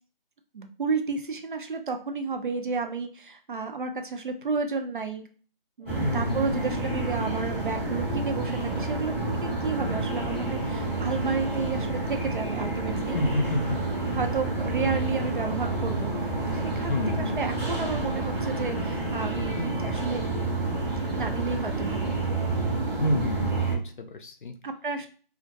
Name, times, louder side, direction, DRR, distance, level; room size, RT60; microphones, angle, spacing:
voice 1, 0.5-5.3 5.8-13.2 13.9-20.2 21.1-22.2 24.6-25.1, right 4 dB, 60° right, 6 dB, 0.5 m, -32 dB
voice 2, 5.8-6.7 12.9-13.8 14.1-14.2 14.8-14.9 16.8-17.4 23.0-24.6, left 1 dB, 60° left, 6 dB, 0.5 m, -29 dB
sound 1, 5.9-23.8, right 2 dB, 15° right, 0.7 m, -29 dB
2.2 x 2.1 x 2.7 m, 0.41 s
figure-of-eight pair, 160°, 29 cm